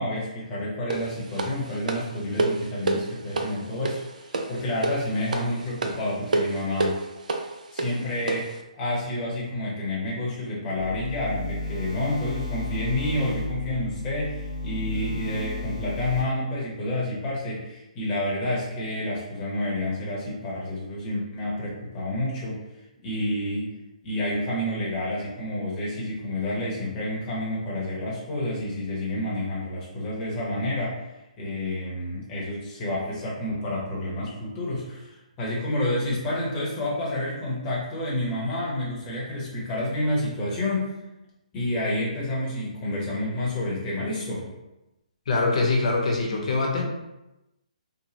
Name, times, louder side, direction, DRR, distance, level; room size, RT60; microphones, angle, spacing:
voice 1, 0.0-7.0 7.7-22.6 23.0-23.7 24.0-31.0 31.4-35.1 35.4-41.0 41.5-44.5, left 1 dB, 20° left, -5 dB, 0.8 m, -29 dB
sound 1, 0.9-8.6, right 3 dB, 75° right, 0.4 m, -29 dB
sound 2, 10.8-16.2, left 2 dB, 55° right, 1.1 m, -33 dB
voice 2, 45.3-46.8, left 3 dB, 55° left, 0 dB, 0.7 m, -23 dB
3.0 x 2.1 x 2.8 m, 0.96 s
hypercardioid pair, 155°, 4 cm